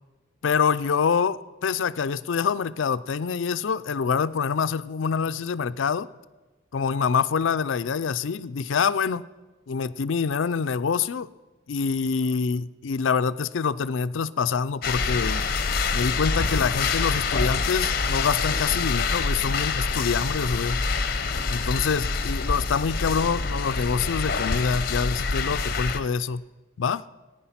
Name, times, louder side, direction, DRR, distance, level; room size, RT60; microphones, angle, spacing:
voice 1, 0.4-6.1 6.7-9.2 9.7-11.3 11.7-15.4 15.9-20.8 21.5-26.4 26.8-27.0, left 6 dB, 85° left, 0.5 m, -26 dB
sound 1, 14.8-26.0, left 4 dB, 50° left, 0.8 m, -26 dB
15.5 x 9.6 x 5.8 m
head